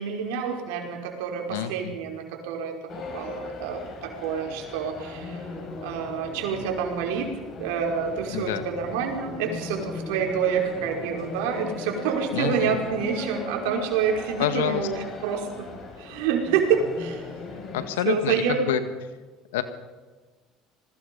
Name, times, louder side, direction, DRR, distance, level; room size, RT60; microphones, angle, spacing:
voice 1, 0.0-2.8 3.1-5.4 5.8-7.3 7.6-15.7 16.0-17.2 18.0-18.6, right 7 dB, 75° right, 2 dB, 5.2 m, -27 dB
voice 2, 1.5-1.9 8.3-8.7 12.3-12.8 14.4-14.9 17.7-18.8 19.5-19.6, left 11 dB, 85° left, 10 dB, 1.9 m, -27 dB
sound 1, 2.9-17.9, left 3 dB, 50° left, 7.2 m, -38 dB
27.5 x 21.0 x 5.5 m, 1.3 s
hypercardioid pair, 75°, 0 cm